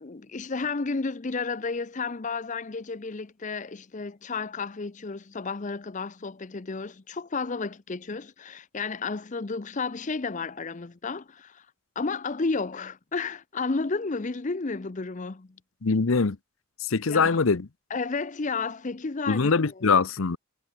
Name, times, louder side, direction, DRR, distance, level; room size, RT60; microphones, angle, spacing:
voice 1, 0.0-11.7 12.0-15.5 17.1-17.4 17.9-20.0, left 4 dB, 35° left, 0.6 m, -32 dB
voice 2, 15.8-16.4 16.9-17.7 19.3-20.4, left 4 dB, 70° left, 0.8 m, -23 dB
head